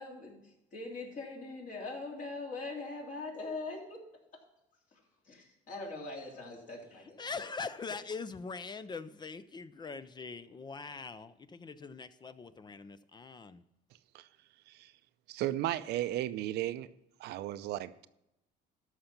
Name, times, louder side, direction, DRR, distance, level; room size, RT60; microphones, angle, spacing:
voice 1, 0.0-4.0 4.9-5.0 5.3-7.2, left 3 dB, 50° left, -1 dB, 3.4 m, -42 dB
voice 2, 7.2-13.6, left 4 dB, 25° left, 14 dB, 0.5 m, -42 dB
voice 3, 15.3-16.9 17.2-18.1, right 14 dB, 80° right, 14 dB, 0.6 m, -35 dB
13.0 x 5.8 x 5.8 m, 0.86 s
cardioid pair, 110°, 17 cm